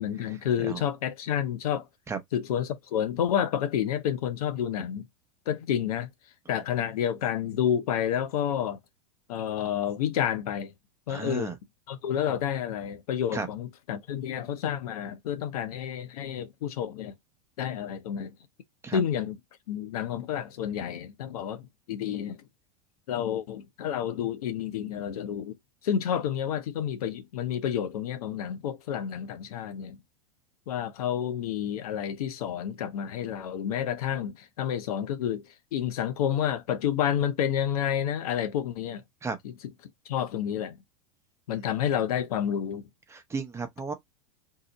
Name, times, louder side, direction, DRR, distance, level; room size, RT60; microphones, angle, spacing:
voice 1, 0.0-1.8 2.3-5.1 5.5-6.1 6.5-8.8 9.3-10.7 11.1-11.5 11.9-17.1 17.6-18.3 18.9-19.4 19.7-22.4 23.1-25.5 25.8-30.0 30.7-35.4 35.7-39.0 39.4-39.5 40.1-40.8 41.5-42.8, left 9 dB, 75° left, 0.7 m, -29 dB
voice 2, 11.1-11.5 13.3-13.5 18.8-19.0 39.2-39.4 43.1-43.9, right 4 dB, 15° right, 0.7 m, -33 dB
2.8 x 2.0 x 3.9 m
hypercardioid pair, 105°, 19 cm